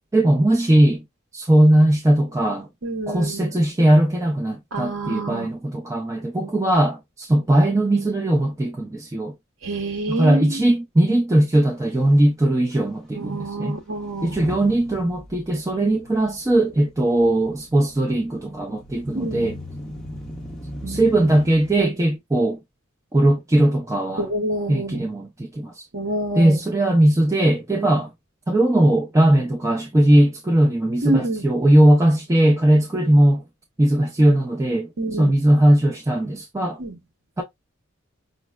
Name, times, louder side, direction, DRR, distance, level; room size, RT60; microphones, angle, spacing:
voice 1, 0.1-1.0 1.3-2.7 3.1-9.3 10.1-13.8 14.2-19.6 20.9-22.6 23.1-24.3 24.7-25.7 26.3-28.1 28.5-33.4 33.8-36.8 37.4-37.5, right 1 dB, 15° right, 0.4 m, -19 dB
voice 2, 2.8-3.5 4.7-5.5 9.6-10.6 13.1-14.4 19.1-19.5 20.8-21.1 24.2-25.0 25.9-26.6 31.0-31.5 35.0-35.3 36.8-36.9, right 1 dB, 70° right, 0.8 m, -27 dB
Motor vehicle (road) / Engine starting / Accelerating revving vroom, 11.5-11.6 11.8-12.1 12.7-12.8 14.1-21.8, equal, 5° left, 0.8 m, -38 dB
5.2 x 2.0 x 2.2 m
head